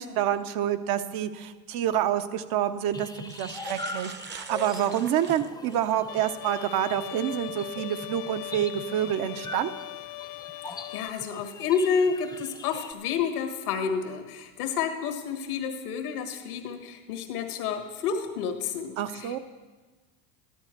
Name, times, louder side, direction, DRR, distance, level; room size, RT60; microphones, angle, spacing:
voice 1, 0.0-9.7 19.0-19.4, right 10 dB, 55° right, 10 dB, 0.8 m, -28 dB
sound 1, 1.8-2.0 2.8-2.9 3.2-6.0 6.5-6.6 8.5-8.7 9.3-9.6, right 5 dB, 25° right, 0.8 m, -44 dB
sound 2, 2.9-12.9, left 3 dB, 10° left, 0.7 m, -42 dB
Bowed string instrument, 6.1-11.1, left 15 dB, 50° left, 0.5 m, -39 dB
voice 2, 10.7-19.3, left 6 dB, 85° left, 5 dB, 1.6 m, -30 dB
13.5 x 11.5 x 4.5 m, 1.3 s
hypercardioid pair, 90°, 44 cm